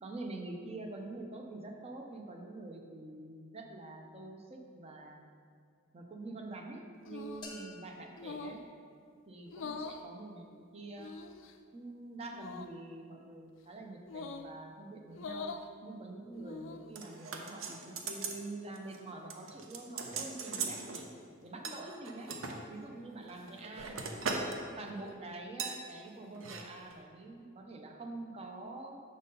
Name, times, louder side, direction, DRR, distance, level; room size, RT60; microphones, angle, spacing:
voice 1, 0.0-5.2 5.9-8.6 9.3-11.1 11.7-15.5 15.8-21.1 21.4-22.3 22.7-24.0 24.8-29.0, right 2 dB, 30° right, 2 dB, 0.6 m, -46 dB
sound 1, 7.1-7.5 8.2-8.7 9.5-10.0 11.0-11.5 12.3-12.7 14.1-14.5 15.1-15.7 16.3-16.9, left 4 dB, 60° left, 0.4 m, -43 dB
sound 2, 7.4-9.4, left 3 dB, 20° left, 0.9 m, -53 dB
sound 3, 17.0-18.4 18.7-19.0 19.3-21.0 21.6-22.6 23.2-24.6 24.9-25.1 25.6-25.8 26.3-26.6 26.9-27.0, right 4 dB, 75° right, 0.6 m, -39 dB
6.4 x 4.1 x 5.3 m, 2.2 s
head